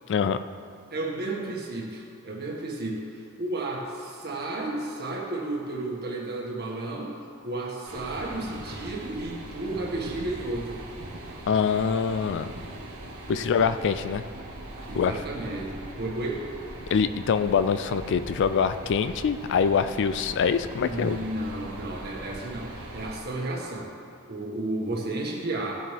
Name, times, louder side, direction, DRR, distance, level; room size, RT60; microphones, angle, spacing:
voice 1, 0.1-0.4 11.5-12.5 13.3-14.2 14.9-15.2 16.9-21.2, left 6 dB, 55° left, 11 dB, 0.4 m, -24 dB
voice 2, 0.9-7.2 7.4-10.9 13.2-13.6 14.9-16.4 20.8-23.9 24.3-25.8, right 2 dB, 50° right, -2 dB, 1.7 m, -33 dB
sound 1, 7.9-23.2, right 1 dB, 80° right, 1.3 m, -41 dB
15.5 x 7.4 x 3.4 m, 2.3 s
head